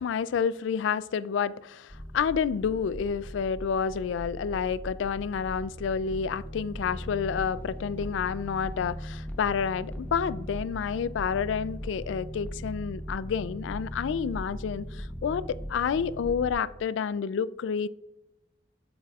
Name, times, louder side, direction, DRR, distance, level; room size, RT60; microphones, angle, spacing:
voice 1, 0.0-17.9, left 6 dB, 75° left, 0.3 m, -29 dB
sound 1, 1.9-16.5, equal, 10° left, 0.8 m, -39 dB
9.3 x 7.2 x 2.4 m
head